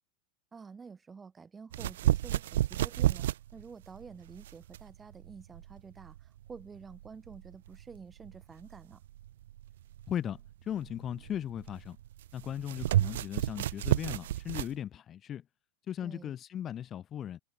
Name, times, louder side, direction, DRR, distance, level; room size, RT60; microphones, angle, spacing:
voice 1, 0.5-3.3 3.5-9.0 16.0-16.3, right 5 dB, 10° right, 3.6 m, -49 dB
sound 1, 1.7-14.7, right 13 dB, 80° right, 0.7 m, -32 dB
voice 2, 10.1-12.0 12.3-15.4 15.9-17.4, left 10 dB, 20° left, 0.9 m, -37 dB
supercardioid pair, 170°, 0 cm